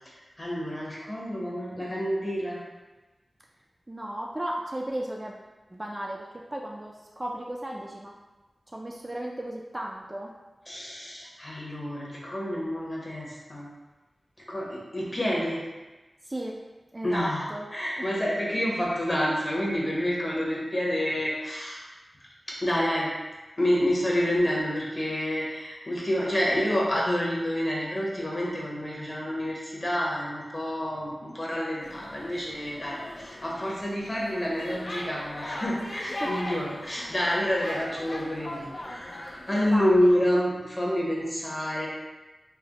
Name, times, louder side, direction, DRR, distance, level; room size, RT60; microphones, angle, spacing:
voice 1, 0.4-2.6 10.7-13.7 14.5-15.6 17.0-17.4 17.7-21.8 22.6-23.1 23.6-41.9, equal, 30° left, -5 dB, 0.9 m, -28 dB
voice 2, 3.9-5.4 5.7-8.1 8.7-10.3 16.3-16.5 16.9-17.7 18.0-18.1 36.2-36.3 39.6-40.1, right 1 dB, 25° right, -1 dB, 0.3 m, -35 dB
sound 1, 31.8-39.8, left 1 dB, 55° left, 0.4 m, -40 dB
3.3 x 2.1 x 3.6 m, 1.1 s
wide cardioid pair, 80°, 0 cm